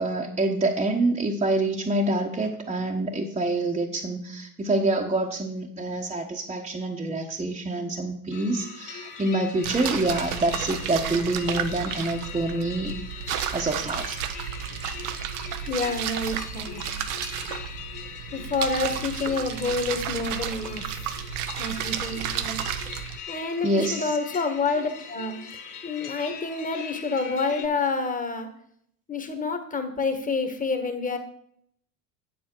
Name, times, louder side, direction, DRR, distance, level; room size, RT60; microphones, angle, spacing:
voice 1, 0.0-12.9 13.5-14.2 23.6-24.1, right 2 dB, 15° right, 0 dB, 1.2 m, -26 dB
sound 1, 8.3-27.7, left 7 dB, 40° left, 2.0 m, -41 dB
sound 2, 9.6-23.2, right 9 dB, 70° right, 0.9 m, -32 dB
voice 2, 15.7-16.8 18.3-21.2 21.6-22.6 23.3-25.4 25.8-28.5 29.1-31.2, left 3 dB, 15° left, 6 dB, 1.7 m, -28 dB
8.6 x 7.6 x 4.6 m, 0.67 s
hypercardioid pair, 75°, 46 cm